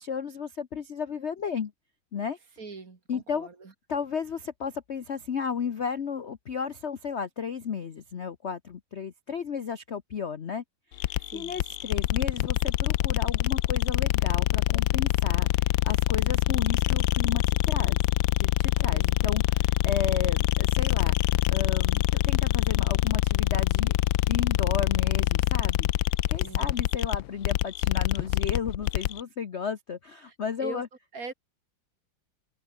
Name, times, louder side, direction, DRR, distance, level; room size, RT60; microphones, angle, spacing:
voice 1, 0.0-1.7 2.1-2.4 3.1-3.5 3.9-10.6 10.9-18.0 18.4-23.9 24.3-30.9, left 6 dB, 45° left, 0.9 m, -33 dB
voice 2, 2.6-3.7 11.2-11.6 18.9-19.2 26.3-26.8 30.2-30.8 31.1-31.3, right 4 dB, 45° right, 2.8 m, -42 dB
sound 1, 11.0-29.2, left 15 dB, 75° left, 1.4 m, -25 dB
omnidirectional pair, 2.2 m